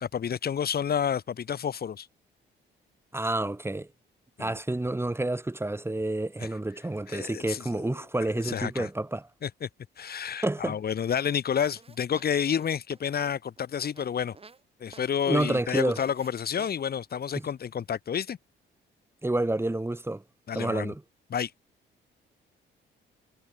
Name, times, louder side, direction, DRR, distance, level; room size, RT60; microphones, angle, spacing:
voice 1, 0.0-2.1 4.4-4.6 6.4-6.5 7.1-7.9 8.4-8.9 9.4-9.7 10.0-14.4 14.8-18.4 20.5-20.9 21.3-21.5, left 8 dB, 50° left, 2.2 m, -30 dB
voice 2, 3.1-3.9 4.4-9.3 10.4-10.8 15.3-16.0 17.3-17.5 19.2-20.2 20.5-21.0, right 2 dB, 10° right, 3.2 m, -29 dB
sound 1, 11.8-14.6 14.9-15.1 15.4-15.6 16.0-16.3 16.6-16.7, right 4 dB, 30° right, 3.0 m, -49 dB
cardioid pair, 90°, 20 cm